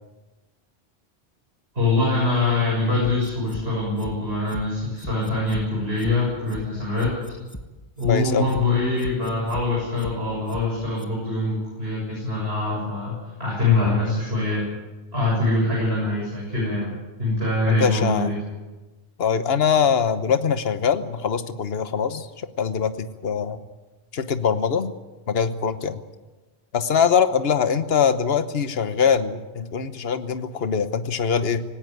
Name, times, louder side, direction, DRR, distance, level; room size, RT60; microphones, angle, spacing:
voice 1, 1.7-7.2 8.0-14.7 15.1-18.3, left 2 dB, 65° right, -4 dB, 7.4 m, -24 dB
sound 1, 3.0-3.6 4.0-4.1 4.5-4.6 5.0-5.6 6.0-6.1 6.5-6.6 7.0-7.6 8.0-8.1 8.5-8.6 9.0-9.6 10.0-10.1 10.5-10.6 11.0-11.1, left 1 dB, 15° left, 1.5 m, -37 dB
voice 2, 8.1-8.5 17.7-18.3 19.2-23.6 24.1-24.9 25.3-26.0 26.7-31.6, left 7 dB, 65° left, 10 dB, 1.3 m, -22 dB
19.0 x 17.5 x 9.3 m, 1.2 s
omnidirectional pair, 1.1 m